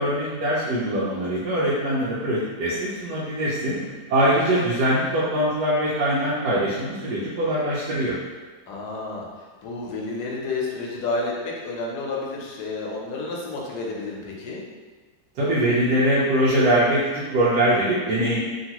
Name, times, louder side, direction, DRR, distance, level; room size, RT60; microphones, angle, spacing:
voice 1, 0.0-3.7 4.1-8.1 15.4-18.4, right 1 dB, 90° right, -8 dB, 1.2 m, -22 dB
voice 2, 3.6-4.0 8.7-9.3 9.6-14.6, left 3 dB, 80° left, -2 dB, 1.1 m, -31 dB
2.9 x 2.7 x 2.8 m, 1.3 s
omnidirectional pair, 1.8 m